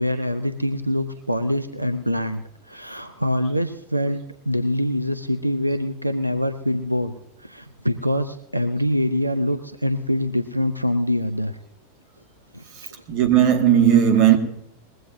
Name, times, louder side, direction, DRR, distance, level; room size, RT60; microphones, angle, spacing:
voice 1, 0.0-7.1 7.4-11.6 12.5-12.6, left 1 dB, 90° right, 0.6 m, -24 dB
voice 2, 12.8-14.4, right 9 dB, 40° right, 1.9 m, -17 dB
20.5 x 15.5 x 2.7 m
figure-of-eight pair, 90°, 0 cm